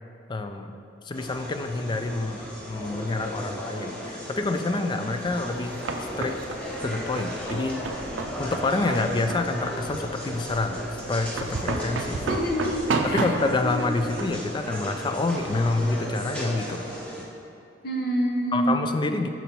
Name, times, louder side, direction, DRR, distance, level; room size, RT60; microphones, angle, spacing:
voice 1, 0.3-0.7 1.0-2.4 2.7-5.8 6.2-6.4 6.8-7.8 8.4-12.2 13.0-16.9 18.5-19.3, left 2 dB, 25° left, 7 dB, 0.3 m, -27 dB
sound 1, 1.1-17.2, equal, 5° left, 1.0 m, -36 dB
sound 2, 5.3-15.7, right 3 dB, 80° right, 0.4 m, -33 dB
voice 2, 12.3-13.3 13.6-13.8 17.8-18.7, right 1 dB, 55° left, 1 dB, 0.8 m, -27 dB
6.0 x 5.3 x 4.4 m, 2.7 s
head